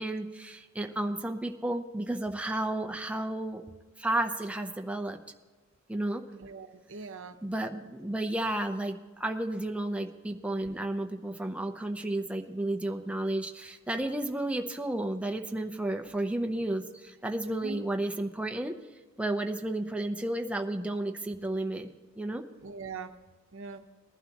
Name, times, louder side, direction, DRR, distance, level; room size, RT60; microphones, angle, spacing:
voice 1, 0.0-3.6 4.0-5.2 5.9-6.2 7.4-18.8 19.2-21.9 22.2-22.4, right 1 dB, 5° right, 4 dB, 0.7 m, -32 dB
voice 2, 6.3-7.4 17.5-17.8 22.6-23.1 23.5-23.8, right 4 dB, 65° right, 7 dB, 0.9 m, -41 dB
20.0 x 11.5 x 3.0 m, 1.3 s
head